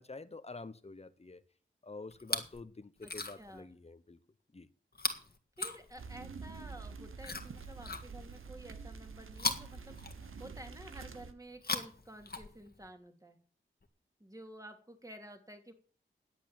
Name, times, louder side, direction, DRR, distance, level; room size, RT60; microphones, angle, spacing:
voice 1, 0.0-1.4 1.8-4.2 4.5-4.7, left 3 dB, 30° left, 1.0 m, -48 dB
Chewing mastication, 2.1-2.6 3.0-3.6 4.9-6.3 7.2-8.5 9.3-10.6 11.5-12.9 13.8-13.9, left 3 dB, 50° left, 1.8 m, -39 dB
voice 2, 3.0-3.7 5.6-10.0 10.4-13.4 14.2-15.7, right 1 dB, 15° right, 2.8 m, -51 dB
sound 1, 6.0-11.3, right 5 dB, 85° right, 1.1 m, -47 dB
10.5 x 8.3 x 7.2 m
cardioid pair, 45°, 21 cm